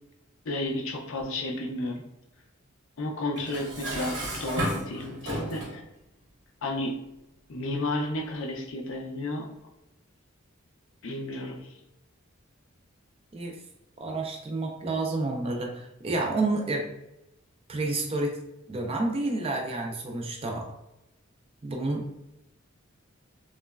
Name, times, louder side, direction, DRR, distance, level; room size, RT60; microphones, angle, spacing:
voice 1, 0.5-2.0 3.0-5.8 6.6-7.0 7.5-9.5 11.0-11.7, left 1 dB, 65° left, 2 dB, 0.4 m, -32 dB
Dishes pots and pans, 3.4-5.8, equal, 55° right, 0.8 m, -33 dB
voice 2, 14.0-16.9 17.7-18.4 18.7-20.7 21.6-22.0, right 2 dB, 25° right, 1 dB, 0.3 m, -29 dB
3.0 x 2.1 x 2.3 m, 0.88 s
head